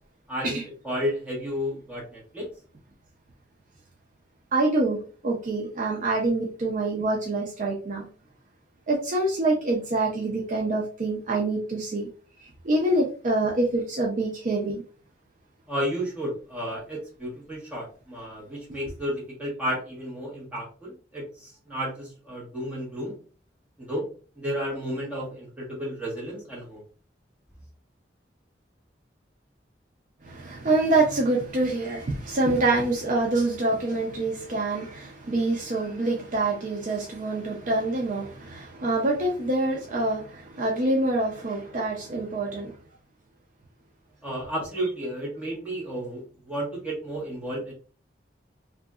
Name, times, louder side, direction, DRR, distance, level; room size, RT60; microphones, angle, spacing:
voice 1, 0.3-0.6 0.8-2.5 15.7-23.1 23.8-24.0 24.4-26.8 44.2-47.7, equal, 10° right, -5 dB, 1.2 m, -32 dB
voice 2, 4.5-5.0 5.2-8.1 8.9-12.1 12.4-14.8 30.2-42.8 44.8-44.9, right 2 dB, 45° right, -1 dB, 0.5 m, -26 dB
2.7 x 2.5 x 2.3 m, 0.39 s
head